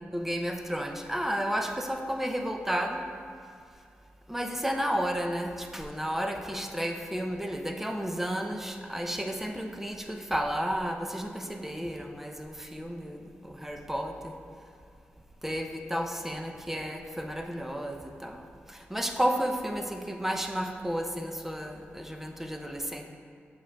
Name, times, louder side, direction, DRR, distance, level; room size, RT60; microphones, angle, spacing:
voice 1, 0.0-3.1 4.3-14.3 15.4-18.4 18.7-23.0, equal, 5° right, 4 dB, 0.5 m, -32 dB
7.0 x 6.2 x 2.2 m, 2.3 s
cardioid pair, 85°, 4 cm